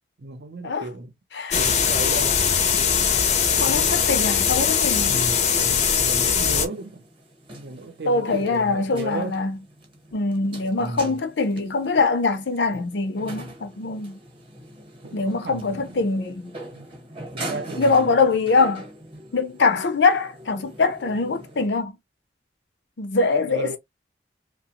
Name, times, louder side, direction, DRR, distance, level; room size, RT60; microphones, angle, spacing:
voice 1, 0.2-1.1 1.6-2.4 3.6-4.2 5.0-7.1 7.5-9.4 10.8-11.2 15.0-16.1 16.7-16.9 17.3-18.2 23.4-23.8, right 2 dB, 70° right, 0.6 m, -34 dB
sound 1, 1.5-6.7, left 7 dB, 40° left, 0.5 m, -21 dB
voice 2, 3.6-5.1 8.1-9.6 10.1-14.2 15.1-16.5 17.8-18.9 19.3-22.0 23.0-23.8, left 4 dB, 85° left, 0.6 m, -23 dB
sound 2, 6.1-21.7, right 1 dB, 30° right, 0.9 m, -42 dB
2.8 x 2.1 x 2.8 m
head